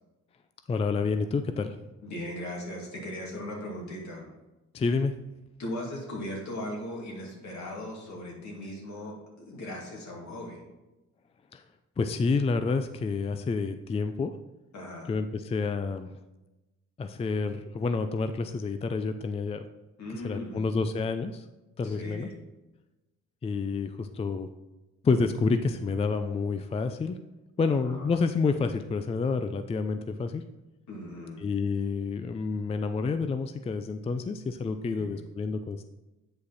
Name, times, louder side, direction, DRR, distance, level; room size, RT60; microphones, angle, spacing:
voice 1, 0.7-1.8 4.7-5.1 11.5-11.6 12.0-14.3 15.1-16.1 17.0-19.6 20.1-21.5 21.8-22.3 23.4-24.5 25.0-27.2 27.6-30.4 31.4-35.8, left 4 dB, 20° left, 9 dB, 0.4 m, -29 dB
voice 2, 2.0-4.3 5.6-9.1 9.5-10.6 14.7-15.1 20.0-20.6 21.8-22.4 27.6-28.2 30.9-31.4 34.9-35.2, left 1 dB, 65° left, -2 dB, 2.5 m, -38 dB
8.4 x 5.2 x 4.1 m, 1.0 s
cardioid pair, 90°, 30 cm